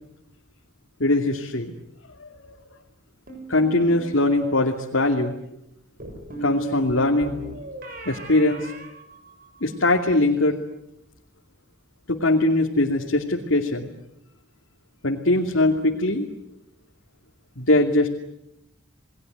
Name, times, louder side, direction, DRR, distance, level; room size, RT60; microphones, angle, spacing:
voice 1, 1.0-1.7 2.2-2.6 3.5-5.3 6.4-7.4 8.1-8.7 9.6-10.6 12.1-13.9 15.0-16.3 17.6-18.1, left 2 dB, 85° left, 0 dB, 2.7 m, -21 dB
sound 1, 3.3-4.1 6.0-9.8, right 2 dB, 45° right, 7.0 m, -36 dB
29.5 x 20.5 x 9.5 m, 0.83 s
head